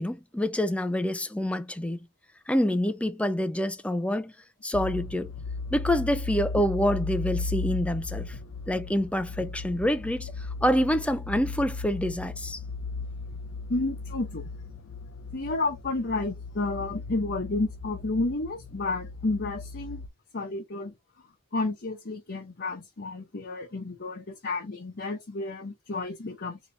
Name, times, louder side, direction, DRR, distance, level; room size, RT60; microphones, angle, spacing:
voice 1, 0.0-2.0 2.5-4.3 4.6-5.3 5.7-8.4 8.7-12.6, equal, 5° left, 0.4 m, -27 dB
sound 1, 4.7-20.1, left 3 dB, 70° left, 0.6 m, -36 dB
voice 2, 13.7-14.4 15.3-20.0 20.3-20.9 21.5-26.6, left 2 dB, 50° left, 0.9 m, -31 dB
4.0 x 2.9 x 3.2 m
head